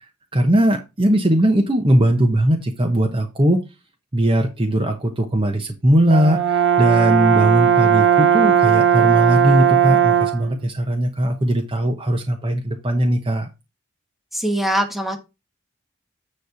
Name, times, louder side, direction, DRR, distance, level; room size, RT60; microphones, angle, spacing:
voice 1, 0.3-3.6 4.1-13.5, right 1 dB, 25° right, 3 dB, 1.0 m, -19 dB
Brass instrument, 6.1-10.5, right 8 dB, 60° right, 0.7 m, -16 dB
voice 2, 14.3-15.2, right 1 dB, ahead, 5 dB, 1.2 m, -22 dB
9.5 x 3.3 x 5.7 m, 0.25 s
head